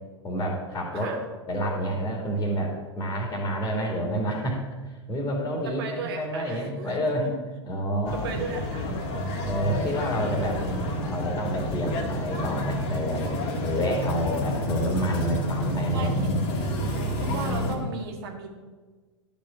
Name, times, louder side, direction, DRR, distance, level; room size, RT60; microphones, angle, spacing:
voice 1, 0.2-1.1 1.5-4.6 5.1-7.3 7.6-8.4 9.4-10.6 11.1-13.2 13.6-16.4, equal, 20° left, 0 dB, 2.4 m, -28 dB
voice 2, 5.6-7.1 8.1-8.9 15.9-16.3 17.2-18.5, right 4 dB, 55° right, 3 dB, 1.9 m, -35 dB
sound 1, 8.0-17.8, equal, 45° left, 1.8 m, -29 dB
12.0 x 5.2 x 7.0 m, 1.4 s
figure-of-eight pair, 90°, 15 cm